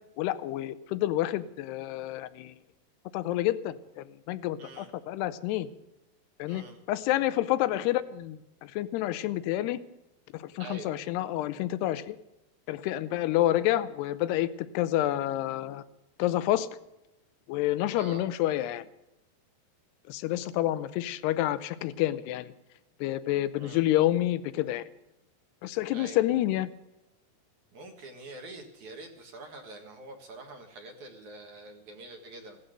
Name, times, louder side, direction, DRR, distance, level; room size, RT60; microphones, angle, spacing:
voice 1, 0.2-2.5 3.1-5.7 6.4-9.8 10.3-12.2 12.7-14.5 14.7-15.8 16.2-16.7 17.5-18.8 20.1-22.5 23.0-24.8 25.6-26.7, left 14 dB, 85° left, 15 dB, 2.8 m, -28 dB
voice 2, 4.6-4.9 6.5-6.8 10.6-10.9 17.9-18.3 23.6-23.8 25.6-26.2 27.7-32.6, right 2 dB, 55° right, 4 dB, 2.6 m, -45 dB
16.5 x 13.0 x 6.6 m, 0.92 s
omnidirectional pair, 4.8 m